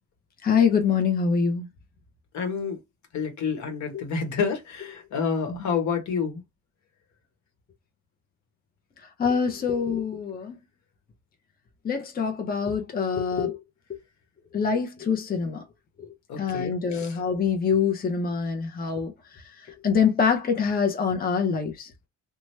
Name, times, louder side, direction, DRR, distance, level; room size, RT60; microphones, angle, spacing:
voice 1, 0.4-1.7 5.5-5.6 9.2-10.5 11.8-13.6 14.5-15.6 16.4-19.1 19.8-21.9, left 6 dB, 30° left, 0.7 m, -25 dB
voice 2, 2.3-2.8 3.1-6.4 16.3-17.1, left 6 dB, 70° left, 1.1 m, -29 dB
2.9 x 2.2 x 3.1 m
cardioid pair, 90°, 30 cm